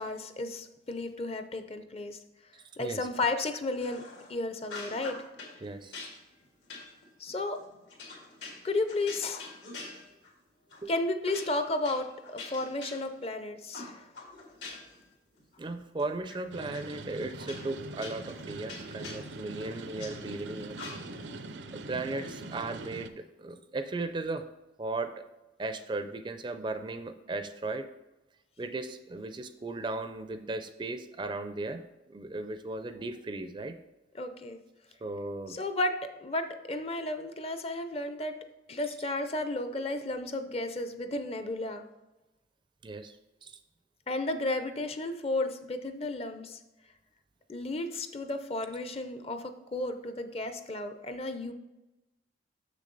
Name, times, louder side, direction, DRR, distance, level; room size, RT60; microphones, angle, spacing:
voice 1, 0.0-2.2 2.8-4.0 4.3-5.2 7.2-7.6 8.6-9.5 10.9-14.1 34.1-34.6 35.5-38.3 38.7-41.9 44.1-46.6 47.5-49.4 49.7-51.5, left 2 dB, 30° left, 8 dB, 0.5 m, -33 dB
sound 1, 3.8-4.3 4.6-5.6 5.9-10.4 10.7-10.9 11.2-13.3 13.7-15.0 15.4-16.4 16.7-16.8 17.4-20.1 20.7-21.3, left 3 dB, 80° left, 2.1 m, -45 dB
voice 2, 5.6-5.9 10.8-10.9 15.6-20.8 21.7-23.1 23.4-24.4 24.8-25.2 25.6-27.9 28.6-33.8 35.0-35.6 42.8-43.2 43.4-43.5, right 2 dB, 25° right, 9 dB, 0.4 m, -36 dB
sound 2, 16.5-23.1, right 2 dB, 80° right, 0.6 m, -42 dB
6.9 x 6.5 x 3.9 m, 1.0 s
head